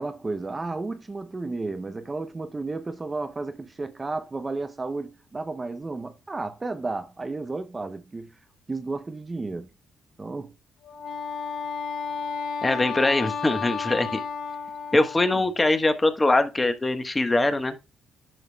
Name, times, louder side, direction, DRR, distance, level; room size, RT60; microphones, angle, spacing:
voice 1, 0.0-8.4 8.7-9.7 10.2-10.5 15.3-15.4, right 3 dB, 25° right, 0.7 m, -33 dB
Wind instrument woodwind instrument, 10.8-15.5, left 6 dB, 65° left, 3.0 m, -32 dB
voice 2, 12.6-14.2 14.9-17.8, left 2 dB, 20° left, 1.2 m, -22 dB
10.5 x 6.0 x 2.3 m
cardioid pair, 90°, 0 cm